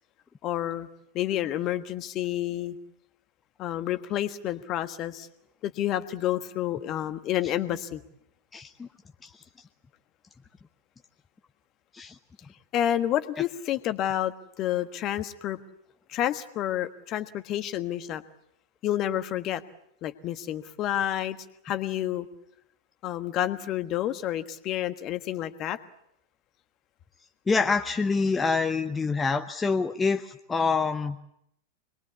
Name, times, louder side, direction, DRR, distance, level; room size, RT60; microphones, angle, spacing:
voice 1, 0.4-0.9 1.1-2.8 3.6-5.3 5.6-8.0 12.7-15.6 16.1-18.2 18.8-19.6 20.0-21.4 21.6-22.3 23.0-25.8, left 12 dB, 35° left, 11 dB, 1.4 m, -29 dB
voice 2, 8.5-8.9 9.2-9.4 11.9-12.2 27.5-31.2, left 4 dB, 15° left, 7 dB, 0.9 m, -26 dB
26.5 x 21.5 x 8.4 m, 0.78 s
figure-of-eight pair, 90°, 0 cm